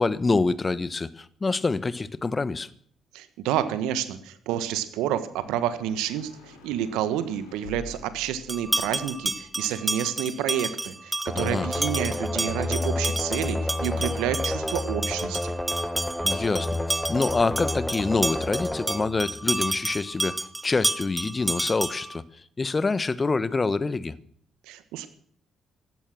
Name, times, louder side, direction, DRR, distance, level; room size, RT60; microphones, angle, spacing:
voice 1, 0.0-2.7 11.4-11.7 16.2-22.2 22.6-24.1, left 3 dB, 30° left, 16 dB, 1.2 m, -26 dB
voice 2, 3.1-15.5 24.7-25.1, right 10 dB, 75° right, 12 dB, 1.5 m, -29 dB
sound 1, 5.3-10.6, left 5 dB, 85° left, 3.8 m, -48 dB
sound 2, 8.5-22.2, right 2 dB, 15° right, 1.2 m, -31 dB
sound 3, 11.3-20.0, left 1 dB, 5° left, 1.7 m, -30 dB
16.0 x 12.5 x 6.2 m, 0.62 s
hypercardioid pair, 45°, 0 cm